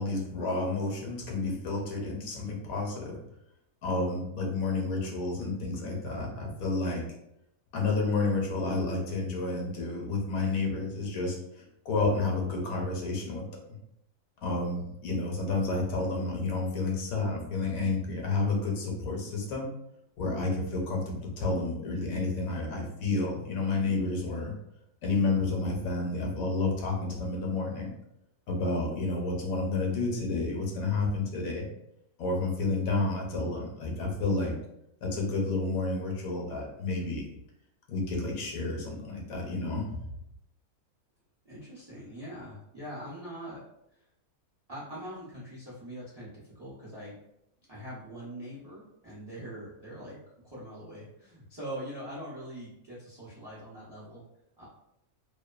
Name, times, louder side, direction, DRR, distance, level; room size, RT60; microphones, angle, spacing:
voice 1, 0.0-3.2 3.8-7.0 7.7-13.4 14.4-19.7 20.2-24.5 25.0-27.9 28.5-31.7 32.2-34.5 35.0-37.3 37.9-40.1, left 3 dB, 75° left, 0 dB, 1.1 m, -30 dB
voice 2, 41.4-43.6 43.9-44.1 44.7-47.2 47.7-50.2 50.4-54.2 54.6-54.7, equal, 40° right, -7 dB, 0.3 m, -42 dB
2.6 x 2.2 x 2.3 m, 0.81 s
omnidirectional pair, 1.5 m